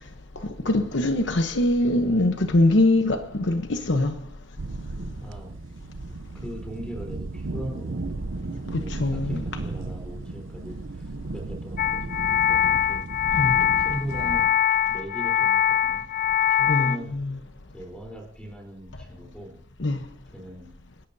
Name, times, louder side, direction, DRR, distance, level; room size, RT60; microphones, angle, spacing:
voice 1, 0.6-4.1 8.9-9.4 13.4-13.5 16.7-17.4 19.8-20.0, left 1 dB, 65° left, 0.9 m, -22 dB
sound 1, 4.6-14.5, right 2 dB, 75° right, 0.7 m, -34 dB
voice 2, 5.2-5.5 6.3-8.3 8.8-13.1 13.8-14.5 14.9-16.0 16.5-17.1 17.7-19.6 20.3-20.7, equal, 5° left, 3.7 m, -39 dB
sound 2, 11.8-17.0, left 10 dB, 40° left, 0.5 m, -23 dB
29.0 x 11.5 x 2.7 m
head